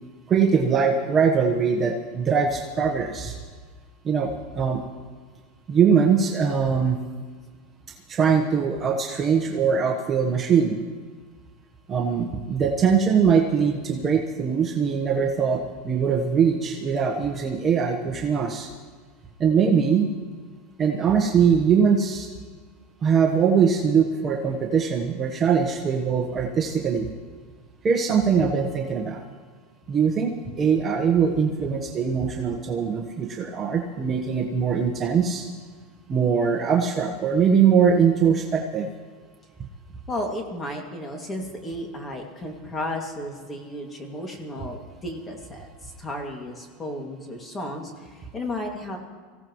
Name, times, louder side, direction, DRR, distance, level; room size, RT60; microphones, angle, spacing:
voice 1, 0.3-3.4 4.0-4.8 5.7-7.0 8.1-10.8 11.9-18.7 19.4-20.1 20.8-22.3 23.0-27.1 27.8-29.2 29.9-35.5 36.1-38.9, right 6 dB, 25° right, 1 dB, 1.2 m, -22 dB
voice 2, 40.1-49.0, left 1 dB, 15° left, 2 dB, 2.3 m, -33 dB
24.5 x 16.0 x 3.2 m, 1.5 s
supercardioid pair, 140°, 0 cm